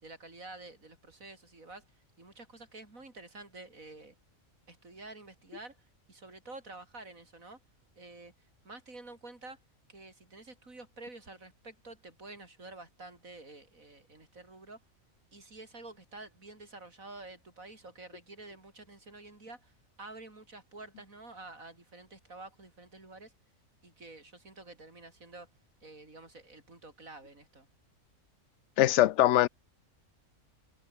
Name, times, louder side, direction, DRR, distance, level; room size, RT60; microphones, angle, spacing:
voice 1, 0.0-1.8 2.2-4.2 4.7-5.8 6.1-7.6 8.0-8.3 8.6-9.6 9.9-14.8 15.3-19.7 20.0-23.3 23.8-25.5 25.8-27.7, right 2 dB, 85° right, 5.1 m, -49 dB
voice 2, 28.8-29.5, left 14 dB, 65° left, 0.8 m, -22 dB
omnidirectional pair, 1.4 m